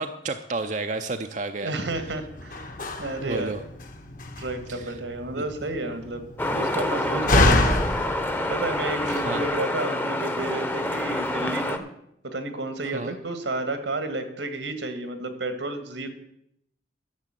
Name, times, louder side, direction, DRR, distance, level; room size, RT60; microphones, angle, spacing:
voice 1, 0.0-1.7 3.2-3.6 4.7-4.9 5.3-5.4 7.1-7.5 9.1-9.5 12.8-13.2, right 3 dB, 40° right, 7 dB, 0.5 m, -32 dB
voice 2, 1.6-3.5 4.4-6.2 6.5-7.8 8.5-11.8 12.2-16.1, right 2 dB, 80° right, 8 dB, 1.7 m, -31 dB
Slam, 1.8-9.5, left 2 dB, 45° left, 1.2 m, -28 dB
sound 1, 6.4-11.8, left 1 dB, 10° left, 0.8 m, -27 dB
11.5 x 7.2 x 7.5 m, 0.76 s
head